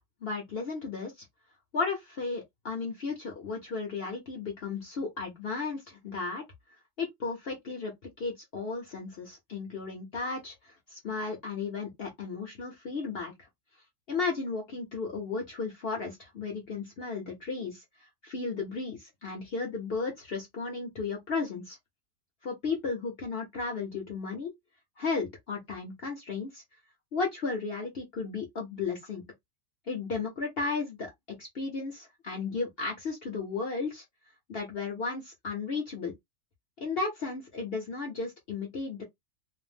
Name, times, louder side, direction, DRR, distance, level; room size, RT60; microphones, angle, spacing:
voice 1, 0.2-1.2 1.7-6.4 7.0-13.3 14.1-21.8 22.4-24.5 25.0-26.6 27.1-29.2 29.9-31.1 31.4-34.0 34.5-36.1 36.8-39.0, left 4 dB, 50° left, 0.8 m, -34 dB
2.5 x 2.0 x 3.2 m
omnidirectional pair, 1.6 m